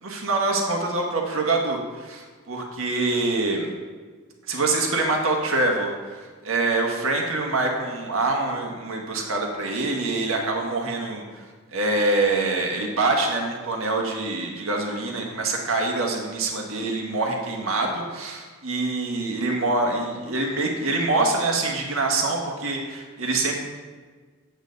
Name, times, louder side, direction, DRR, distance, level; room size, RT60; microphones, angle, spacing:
voice 1, 0.0-3.7 4.5-11.4 11.7-23.5, right 2 dB, 80° right, 1 dB, 1.6 m, -25 dB
9.1 x 8.0 x 4.0 m, 1.5 s
head